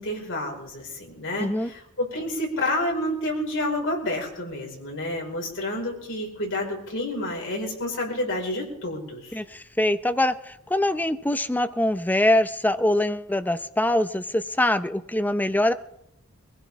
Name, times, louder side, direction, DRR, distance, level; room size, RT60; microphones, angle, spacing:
voice 1, 0.0-9.4, left 1 dB, 60° left, -1 dB, 5.0 m, -29 dB
voice 2, 1.4-1.7 9.3-15.7, left 1 dB, 10° left, 10 dB, 0.6 m, -23 dB
22.5 x 16.0 x 3.6 m, 0.80 s
head